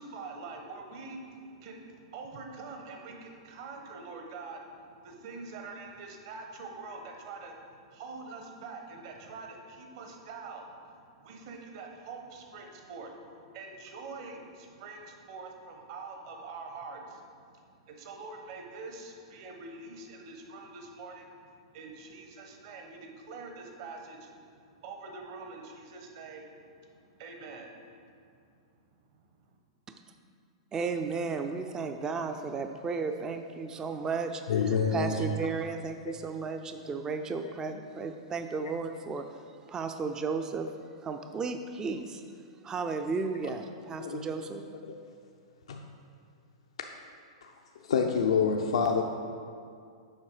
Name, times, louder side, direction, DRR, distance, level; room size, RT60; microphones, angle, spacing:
voice 1, 0.0-27.9 29.1-29.2, right 3 dB, 55° right, 3 dB, 1.2 m, -45 dB
voice 2, 30.7-39.3 39.7-40.7 41.0-42.2 42.6-44.6, right 4 dB, 20° right, 6 dB, 0.4 m, -34 dB
voice 3, 34.5-35.1 44.0-44.2 44.8-45.0 45.7-45.8 47.4-47.5 47.9-49.0, left 6 dB, 75° left, 3 dB, 0.5 m, -27 dB
7.3 x 5.4 x 4.9 m, 2.3 s
hypercardioid pair, 115°, 3 cm